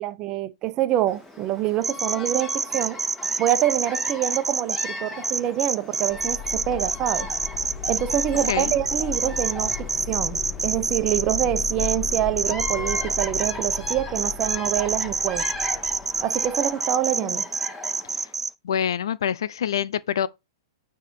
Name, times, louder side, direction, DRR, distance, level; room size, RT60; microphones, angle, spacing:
voice 1, 0.0-3.0 3.4-7.3 7.9-15.5 16.2-17.5, right 12 dB, 35° right, 1.1 m, -26 dB
Bird vocalization bird call bird song, 1.1-18.3, left 2 dB, 15° left, 3.0 m, -38 dB
sound 1, 1.8-4.8 5.2-18.5, right 4 dB, 10° right, 0.5 m, -26 dB
sound 2, 6.1-16.7, left 7 dB, 30° left, 1.7 m, -36 dB
voice 2, 18.6-20.3, left 9 dB, 70° left, 0.6 m, -26 dB
9.4 x 3.7 x 4.9 m
hypercardioid pair, 120°, 3 cm